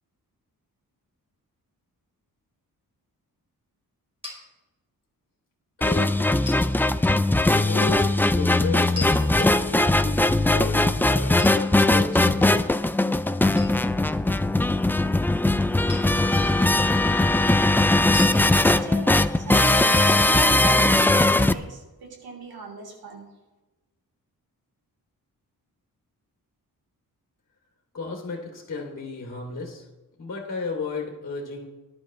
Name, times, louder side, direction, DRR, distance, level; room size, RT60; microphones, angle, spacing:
sound 1, 4.2-4.4 6.4-6.7 8.9-9.8 11.4-12.3 13.6-13.8 15.9-16.3 18.1-18.4, left 2 dB, 15° right, 5.4 m, -37 dB
voice 1, 5.8-6.4 7.4-8.1 8.3-12.5 27.9-29.8 30.2-31.7, left 4 dB, 45° left, -1 dB, 2.7 m, -33 dB
sound 2, 5.8-21.5, left 2 dB, 5° left, 0.3 m, -20 dB
voice 2, 18.6-23.3, right 3 dB, 85° right, 1 dB, 3.7 m, -38 dB
19.5 x 11.5 x 3.2 m, 1.1 s
wide cardioid pair, 150°, 36 cm